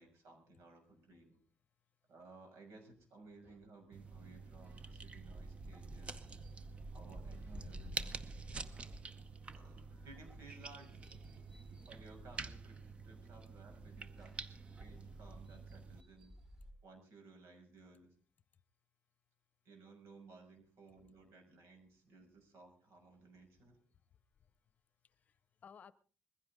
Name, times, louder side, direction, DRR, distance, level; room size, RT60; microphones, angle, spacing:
voice 1, 0.0-1.4 2.1-6.2 6.9-8.3 9.5-10.9 11.9-12.8 13.0-16.3 16.8-18.1 19.6-23.8, right 3 dB, 90° right, 3 dB, 6.2 m, -58 dB
sound 1, 3.4-3.7 4.4-4.9 5.4-6.3 7.0-7.8 8.3-10.2, right 2 dB, 55° right, 4.6 m, -68 dB
sound 2, 3.9-16.0, right 4 dB, 25° right, 0.8 m, -48 dB
sound 3, 6.1-16.7, equal, 5° right, 1.4 m, -60 dB
voice 2, 7.6-8.0 23.6-23.7 24.4-24.5 25.0-25.9, left 8 dB, 35° left, 16 dB, 0.8 m, -56 dB
21.0 x 15.5 x 3.7 m, 0.37 s
cardioid pair, 175°, 4 cm